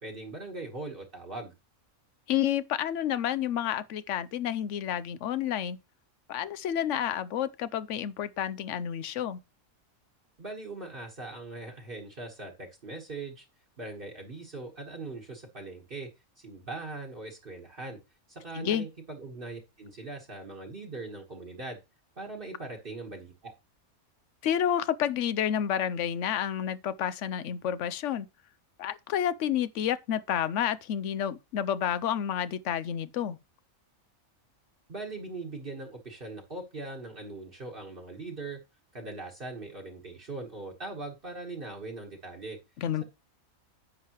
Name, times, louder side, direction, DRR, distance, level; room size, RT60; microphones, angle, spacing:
voice 1, 0.0-1.5 10.4-13.5 13.8-16.1 16.4-18.0 18.3-21.8 22.2-23.5 34.9-38.6 38.9-42.6, right 3 dB, 40° right, 1.5 m, -40 dB
voice 2, 2.3-5.8 6.3-9.4 18.5-18.9 24.4-28.3 28.8-33.4 42.8-43.0, left 10 dB, 70° left, 0.9 m, -30 dB
10.0 x 7.4 x 3.0 m
omnidirectional pair, 1.4 m